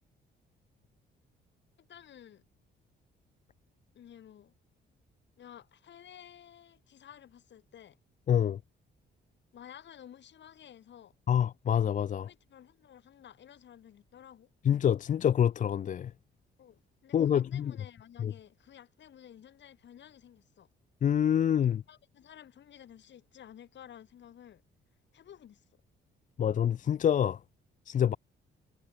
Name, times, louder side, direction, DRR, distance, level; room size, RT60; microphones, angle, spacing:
voice 1, 1.8-2.4 3.9-4.5 5.4-8.0 9.5-11.1 12.2-14.5 16.6-20.7 21.9-24.6 25.1-25.6, left 10 dB, 65° left, 6.7 m, -53 dB
voice 2, 8.3-8.6 11.3-12.3 14.6-16.1 17.1-17.7 18.2-18.3 21.0-21.8 26.4-27.4 27.9-28.2, left 9 dB, 40° left, 0.4 m, -26 dB
cardioid pair, 90°, 20 cm